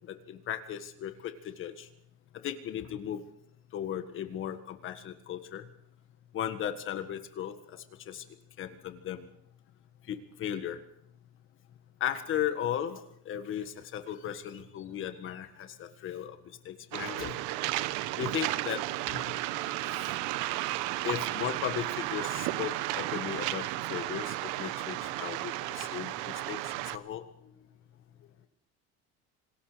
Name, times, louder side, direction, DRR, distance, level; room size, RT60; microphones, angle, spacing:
voice 1, 0.1-1.9 2.4-3.2 3.7-5.6 6.3-8.2 8.6-9.2 10.1-10.8 12.0-16.4 16.6-17.4 18.2-18.8 19.1-19.3 21.0-26.6 26.9-27.2, left 10 dB, 45° left, 9 dB, 1.6 m, -36 dB
Waves surf, 16.9-27.0, right 17 dB, 85° right, 1.1 m, -33 dB
voice 2, 27.4-28.5, left 8 dB, 60° left, -1 dB, 5.5 m, -67 dB
27.0 x 19.5 x 5.1 m, 0.70 s
cardioid pair, 160°, 30 cm